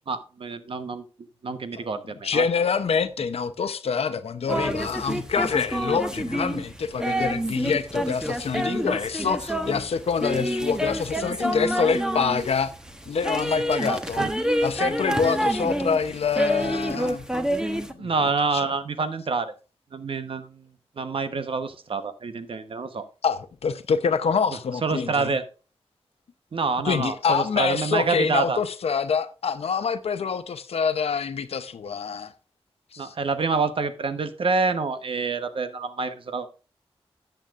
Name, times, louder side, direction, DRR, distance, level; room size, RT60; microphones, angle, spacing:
voice 1, 0.1-1.0 1.4-2.4 14.2-14.3 18.0-19.5 19.9-20.6 21.0-23.1 24.8-25.4 26.5-28.6 33.0-36.5, right 4 dB, 60° right, 1.1 m, -27 dB
voice 2, 2.2-12.7 13.1-14.2 14.6-17.2 18.0-18.3 18.5-18.7 23.2-25.3 26.8-32.3 32.9-33.1, left 6 dB, 85° left, 0.7 m, -26 dB
sound 1, 4.5-17.9, equal, 5° right, 1.1 m, -28 dB
14.0 x 9.0 x 2.5 m
wide cardioid pair, 115°, 10 cm